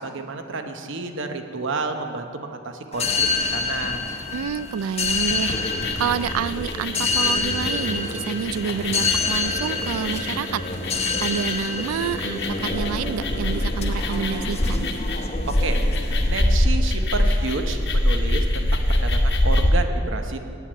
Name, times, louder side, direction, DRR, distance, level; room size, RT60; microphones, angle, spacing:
voice 1, 0.0-4.0 15.5-20.4, right 3 dB, 60° right, 6 dB, 0.9 m, -30 dB
sound 1, 2.9-16.4, left 3 dB, 30° left, 0.8 m, -27 dB
voice 2, 4.3-14.9, right 7 dB, 90° right, 18 dB, 0.3 m, -28 dB
sound 2, 5.0-19.7, left 1 dB, 55° left, 1.1 m, -24 dB
9.1 x 8.2 x 8.5 m, 2.4 s
head